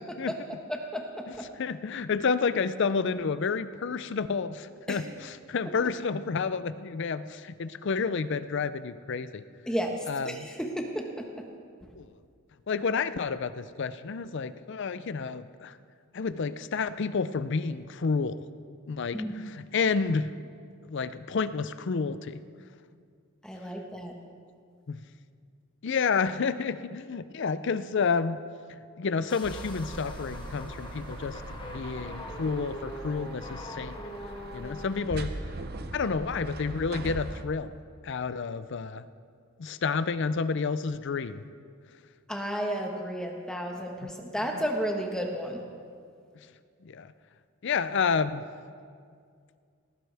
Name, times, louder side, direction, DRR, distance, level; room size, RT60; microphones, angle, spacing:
voice 1, 0.7-1.5 4.9-5.0 9.7-11.2 19.1-19.3 23.4-24.1 42.3-45.6, equal, 5° left, 1 dB, 1.3 m, -32 dB
voice 2, 1.6-9.4 10.1-10.5 11.9-12.1 12.7-15.7 16.1-18.4 18.9-20.3 20.9-22.4 24.9-25.0 25.8-28.4 28.7-34.0 34.5-35.3 35.9-37.7 38.0-39.0 39.6-41.5 44.0-44.1 46.8-47.1 47.6-48.4, left 5 dB, 55° left, 13 dB, 0.5 m, -30 dB
sound 1, 29.3-35.0, left 1 dB, 20° left, 1.0 m, -43 dB
sound 2, 29.4-37.4, right 2 dB, 45° right, 0.8 m, -40 dB
18.5 x 15.0 x 3.4 m, 2.2 s
head